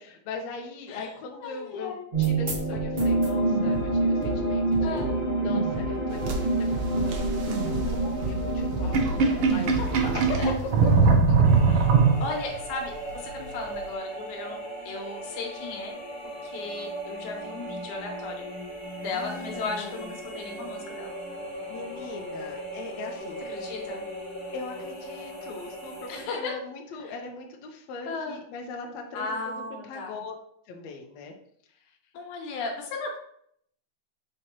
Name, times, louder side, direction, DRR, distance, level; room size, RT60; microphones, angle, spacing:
voice 1, 0.0-5.0 5.4-10.4 10.8-11.4 19.1-20.1 21.7-23.5 24.5-29.6 29.9-30.3 30.7-31.3, left 4 dB, 75° left, 1 dB, 1.9 m, -40 dB
voice 2, 1.4-2.1 4.8-5.1 9.8-10.0 10.4-10.5 11.7-11.9 12.2-14.6 14.9-15.9 16.4-18.5 19.0-21.1 23.4-24.1 26.1-26.5 27.0-27.1 28.1-28.4 29.1-30.2 32.1-33.2, left 3 dB, 90° left, 2 dB, 2.6 m, -36 dB
sound 1, 2.1-10.8, right 2 dB, 60° right, 0.5 m, -27 dB
sound 2, 6.1-12.6, right 4 dB, 75° right, 1.3 m, -23 dB
sound 3, 11.4-26.2, right 1 dB, 40° left, 2.6 m, -38 dB
7.7 x 4.3 x 2.8 m, 0.67 s
omnidirectional pair, 3.4 m